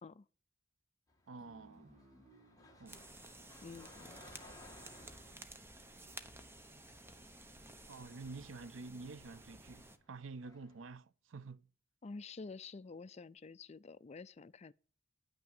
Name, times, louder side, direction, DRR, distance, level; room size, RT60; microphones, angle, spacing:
sound 1, 1.1-10.9, left 2 dB, 20° left, 1.8 m, -62 dB
voice 1, 1.3-1.9 2.8-3.1 7.9-11.7, right 3 dB, 90° right, 0.6 m, -49 dB
sound 2, 1.4-4.6, right 2 dB, 35° right, 2.7 m, -64 dB
sound 3, 2.9-10.0, right 2 dB, 10° right, 0.9 m, -54 dB
voice 2, 3.6-4.2 12.0-14.7, left 4 dB, 35° left, 0.4 m, -49 dB
10.0 x 6.1 x 8.8 m
head